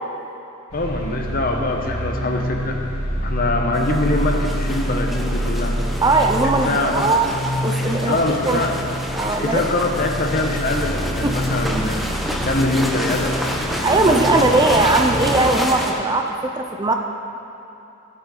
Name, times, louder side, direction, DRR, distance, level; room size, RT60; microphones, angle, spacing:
sound 1, 0.7-15.3, equal, 90° left, 2.4 m, -27 dB
voice 1, 0.7-2.8 3.2-5.8 6.7-7.2 8.1-8.8 9.2-12.0 12.5-13.4 13.8-14.8, left 2 dB, 40° left, 2 dB, 1.0 m, -23 dB
sound 2, 3.7-15.9, equal, ahead, 0.9 m, -28 dB
voice 2, 6.0-7.3 7.6-8.6 9.2-9.9 11.2-11.5 12.2-12.3 13.8-16.9, right 2 dB, 20° right, 4 dB, 0.5 m, -19 dB
15.5 x 8.9 x 3.9 m, 2.8 s
head